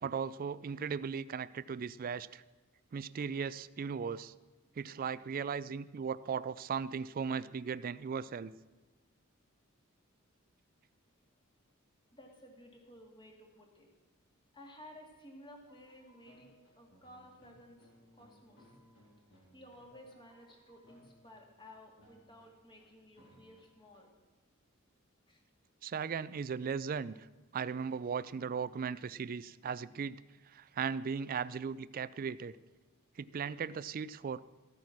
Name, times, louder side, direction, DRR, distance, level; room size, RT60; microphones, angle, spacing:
voice 1, 0.0-2.4 2.9-4.3 4.8-8.5 25.8-27.2 27.5-30.2 30.5-32.6 33.2-34.4, right 6 dB, 45° right, 16 dB, 0.3 m, -37 dB
voice 2, 12.1-13.9 14.5-17.9 18.1-18.7 19.5-24.1 25.3-25.4, left 1 dB, 25° left, 1 dB, 2.3 m, -55 dB
sound 1, 15.6-21.7 22.0-22.8 23.2-24.0, equal, 75° left, 4.5 m, -64 dB
13.5 x 9.4 x 5.9 m, 1.3 s
head